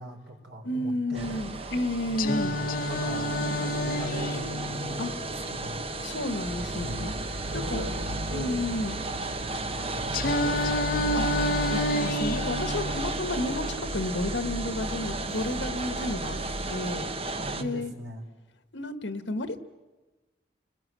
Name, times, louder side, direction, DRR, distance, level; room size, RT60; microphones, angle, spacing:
voice 1, 0.0-1.7 2.1-5.8 6.7-7.1 7.5-8.9 9.7-11.0 17.4-18.2, right 1 dB, 85° right, 2 dB, 4.6 m, -40 dB
voice 2, 0.6-2.6 5.0-5.1 6.0-7.1 7.5-7.9 8.3-9.0 11.1-13.7 13.9-16.4 16.7-17.9 18.7-19.6, left 1 dB, 80° left, 9 dB, 1.5 m, -32 dB
sound 1, 1.1-17.6, right 2 dB, 30° right, 1.1 m, -34 dB
Singing, 2.2-6.2 10.1-14.2, left 1 dB, 50° left, 0.9 m, -30 dB
sound 2, 6.4-16.9, right 1 dB, 50° right, 0.7 m, -37 dB
29.5 x 20.5 x 7.6 m, 1.2 s
head